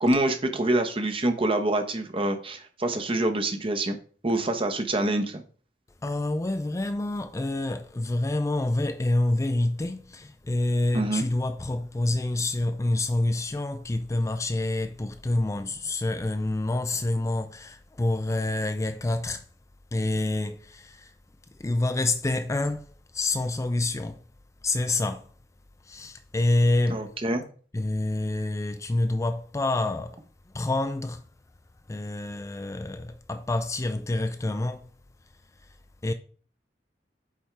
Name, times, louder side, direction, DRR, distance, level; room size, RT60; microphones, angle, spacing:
voice 1, 0.0-4.0 4.2-5.4 10.9-11.2 26.9-27.4, right 1 dB, 30° right, 0.9 m, -26 dB
voice 2, 6.0-19.5 19.9-21.1 21.5-24.2 24.6-25.3 25.8-27.1 27.7-30.2 30.5-31.2 31.9-34.9 35.6-35.8 36.0-36.1, left 2 dB, 15° left, 0.4 m, -27 dB
8.5 x 3.6 x 4.5 m
head